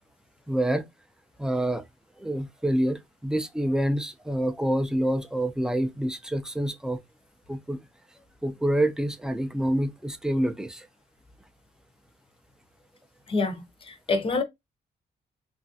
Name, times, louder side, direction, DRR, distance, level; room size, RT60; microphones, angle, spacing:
voice 1, 0.5-0.9 1.4-1.8 2.2-7.0 7.5-7.8 8.4-10.9, right 1 dB, 5° right, 0.3 m, -27 dB
voice 2, 13.3-14.4, left 3 dB, 35° left, 0.6 m, -27 dB
3.0 x 2.4 x 2.7 m
cardioid pair, 130°, 16 cm